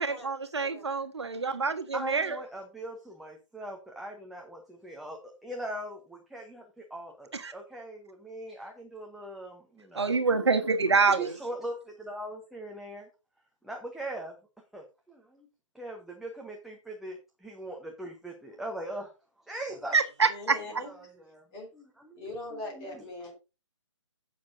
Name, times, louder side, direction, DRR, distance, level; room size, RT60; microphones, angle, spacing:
voice 1, 0.0-2.4 7.3-7.5 9.9-11.3 19.9-20.8, right 4 dB, 60° right, 1.5 m, -26 dB
voice 2, 1.9-10.2 11.1-13.1 13.6-14.3 14.7-15.5 15.7-19.1 19.4-20.0 20.8-21.5 21.7-23.0, right 1 dB, ahead, 0.9 m, -41 dB
voice 3, 20.2-20.9 21.5-21.7 22.1-23.3, left 2 dB, 20° left, 4.3 m, -41 dB
16.0 x 6.5 x 2.7 m
figure-of-eight pair, 140°, 16 cm